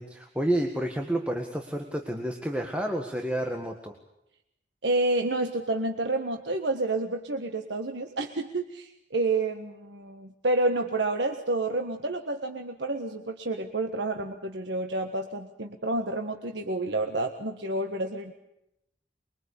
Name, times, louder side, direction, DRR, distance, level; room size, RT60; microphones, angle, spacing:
voice 1, 0.0-3.9, right 1 dB, 5° right, 3 dB, 1.8 m, -30 dB
voice 2, 4.8-18.3, right 2 dB, 85° right, 5 dB, 1.6 m, -29 dB
24.5 x 23.0 x 8.5 m, 0.84 s
head